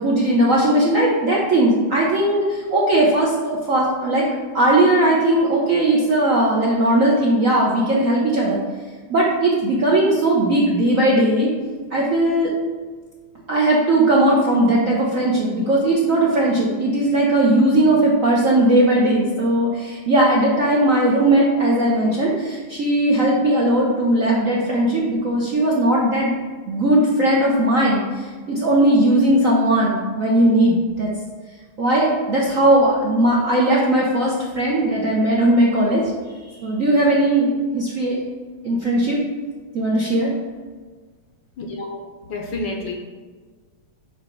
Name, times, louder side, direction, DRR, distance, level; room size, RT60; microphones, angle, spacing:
voice 1, 0.0-4.3 4.5-8.6 9.1-11.5 11.9-12.5 13.5-26.3 26.7-31.1 31.8-36.0 36.6-38.2 38.6-39.2 39.7-40.3, right 1 dB, 60° right, -4 dB, 0.8 m, -18 dB
voice 2, 41.6-42.0 42.3-42.9, left 2 dB, 65° left, 1 dB, 1.2 m, -29 dB
7.8 x 3.0 x 4.5 m, 1.4 s
omnidirectional pair, 2.4 m